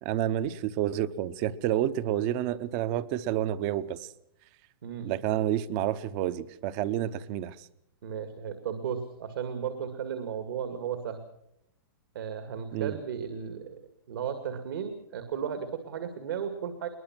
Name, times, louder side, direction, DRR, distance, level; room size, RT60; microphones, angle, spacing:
voice 1, 0.0-4.1 5.0-7.7 12.7-13.0, right 12 dB, 30° right, 16 dB, 0.8 m, -29 dB
voice 2, 4.8-5.1 8.0-11.2 12.1-13.8 14.1-16.9, right 7 dB, 65° right, 8 dB, 2.1 m, -35 dB
22.0 x 20.5 x 6.0 m, 0.76 s
hypercardioid pair, 160°, 12 cm